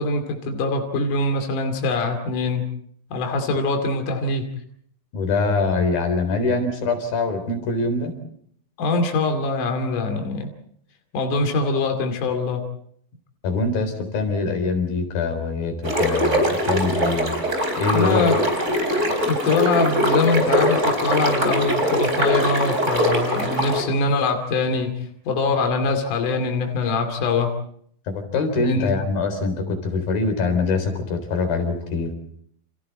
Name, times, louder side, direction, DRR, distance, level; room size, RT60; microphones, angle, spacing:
voice 1, 0.0-2.6 3.1-4.5 8.8-10.5 11.1-12.6 17.9-18.4 19.3-27.5 28.6-28.9, left 3 dB, 65° left, 4 dB, 4.0 m, -23 dB
voice 2, 5.1-8.1 13.4-17.3 17.8-18.2 28.1-32.1, left 3 dB, 90° left, 7 dB, 5.7 m, -24 dB
sound 1, 15.8-23.8, equal, 20° right, 4.3 m, -22 dB
29.5 x 28.0 x 4.3 m, 0.65 s
omnidirectional pair, 4.1 m